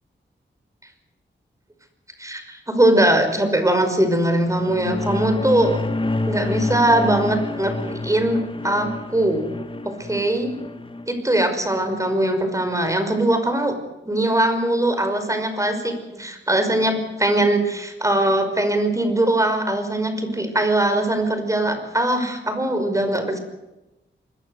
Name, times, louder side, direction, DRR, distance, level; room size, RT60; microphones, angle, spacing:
voice 1, 2.2-5.8 6.2-9.5 10.1-10.5 11.1-13.7 14.1-23.4, right 1 dB, 15° right, 7 dB, 5.5 m, -21 dB
sound 1, 4.4-11.1, left 2 dB, 25° left, 1.6 m, -28 dB
26.0 x 22.0 x 8.1 m, 0.97 s
wide cardioid pair, 100°, 19 cm